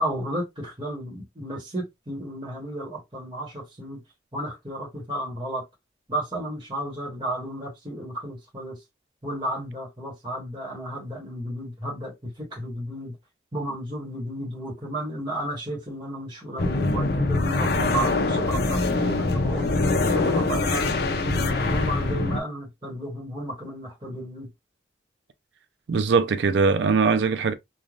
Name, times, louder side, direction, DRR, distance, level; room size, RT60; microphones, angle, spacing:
voice 1, 0.0-4.0 4.3-5.6 6.1-8.8 9.2-13.2 13.5-19.7 20.1-24.5, right 1 dB, 25° right, 1.1 m, -33 dB
sound 1, 16.6-22.4, left 2 dB, 55° left, 0.5 m, -24 dB
voice 2, 25.9-27.5, right 5 dB, 75° right, 0.4 m, -21 dB
3.2 x 2.2 x 2.4 m
head